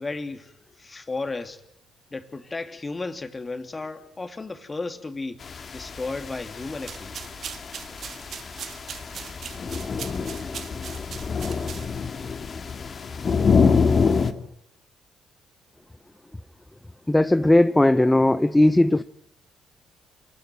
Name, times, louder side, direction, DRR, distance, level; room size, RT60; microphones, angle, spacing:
voice 1, 0.0-1.6 2.1-5.4 5.7-7.3, left 3 dB, 30° left, 2.9 m, -34 dB
sound 1, 5.4-14.3, left 5 dB, 45° left, 2.3 m, -26 dB
sound 2, 6.8-12.1, right 8 dB, 55° right, 1.9 m, -40 dB
voice 2, 17.1-19.0, left 1 dB, 15° left, 0.9 m, -18 dB
28.0 x 19.5 x 9.3 m
hypercardioid pair, 45°, 0 cm